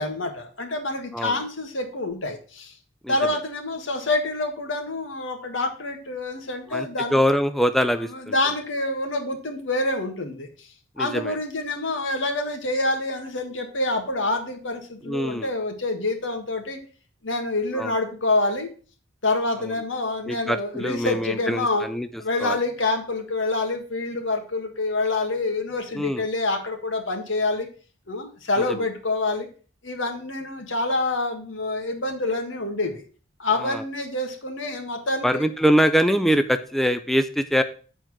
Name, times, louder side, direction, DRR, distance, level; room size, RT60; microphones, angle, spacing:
voice 1, 0.0-2.7 3.1-7.1 8.1-10.7 11.0-16.8 17.2-18.7 19.2-21.9 22.2-27.7 28.1-29.5 29.8-33.0 33.4-35.4, left 2 dB, 80° left, 5 dB, 1.7 m, -27 dB
voice 2, 6.7-8.3 11.0-11.4 15.0-15.5 17.7-17.9 19.6-19.7 20.3-22.1 22.4-22.6 25.9-26.2 28.6-28.7 33.6-33.8 35.2-37.6, equal, ahead, 9 dB, 0.4 m, -23 dB
7.9 x 4.5 x 6.2 m, 0.39 s
head